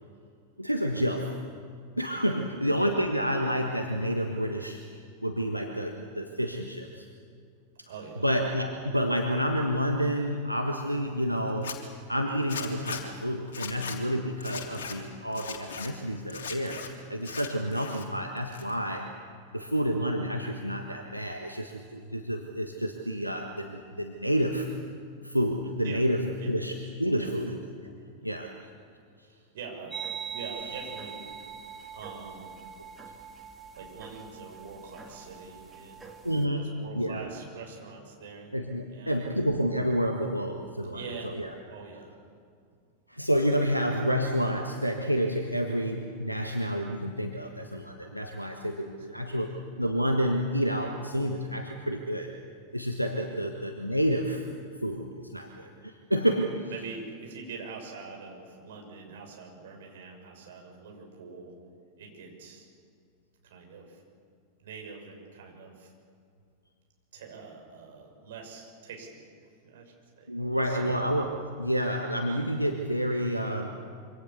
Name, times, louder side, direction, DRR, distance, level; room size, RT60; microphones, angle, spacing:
voice 1, 0.6-1.4 2.0-4.8 5.2-7.0 8.2-11.8 12.1-16.8 17.1-19.1 19.5-24.7 25.2-26.2 26.5-27.6 27.8-27.9 28.2-28.5 36.2-37.3 38.5-41.5 43.1-52.3 52.7-54.4 54.8-56.7 70.3-73.8, equal, 90° right, 2 dB, 1.5 m, -29 dB
voice 2, 7.9-8.3 25.8-26.0 26.3-26.5 27.1-27.3 28.2-28.3 29.2-30.0 30.3-31.3 31.9-32.6 33.7-36.0 36.5-38.5 38.9-39.3 40.9-41.3 41.7-42.1 43.8-44.3 47.4-47.5 48.4-48.5 48.8-49.5 53.3-53.5 56.7-61.5 62.0-62.7 63.4-64.0 64.6-65.9 67.1-69.3 69.6-71.1, right 4 dB, 60° right, 1 dB, 6.4 m, -44 dB
Zipper (clothing), 11.5-11.8 12.5-13.0 13.5-14.0 14.4-14.9 15.3-15.9 16.3-16.9 17.2-18.0 18.4-19.0, left 7 dB, 60° left, 3.5 m, -38 dB
sound 1, 29.9-36.4, right 7 dB, 10° right, 2.6 m, -42 dB
26.0 x 25.0 x 7.2 m, 2.2 s
figure-of-eight pair, 90°, 0 cm